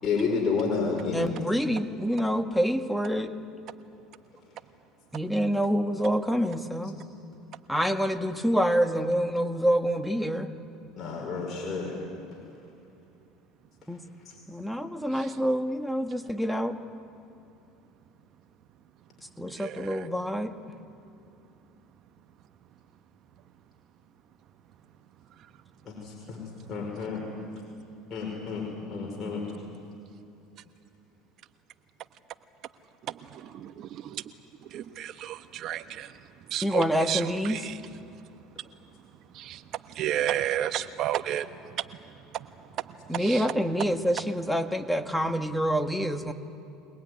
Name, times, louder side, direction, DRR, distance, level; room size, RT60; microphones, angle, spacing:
voice 1, 0.0-1.3 7.0-7.1 11.0-11.9 14.3-14.4 25.9-26.4 26.7-27.3 28.1-29.5, left 5 dB, 35° left, -2 dB, 5.3 m, -30 dB
voice 2, 1.1-3.3 5.1-7.0 7.7-10.5 13.9-14.0 14.5-16.8 19.4-20.5 36.6-37.7 43.1-46.3, equal, ahead, 7 dB, 1.7 m, -27 dB
voice 3, 19.5-20.0 33.3-34.2 34.7-36.1 36.5-37.7 39.3-39.6 39.9-41.5 42.3-42.5 43.1-43.4, right 11 dB, 55° right, 11 dB, 1.2 m, -32 dB
24.0 x 19.5 x 9.6 m, 2.8 s
hypercardioid pair, 85°, 0 cm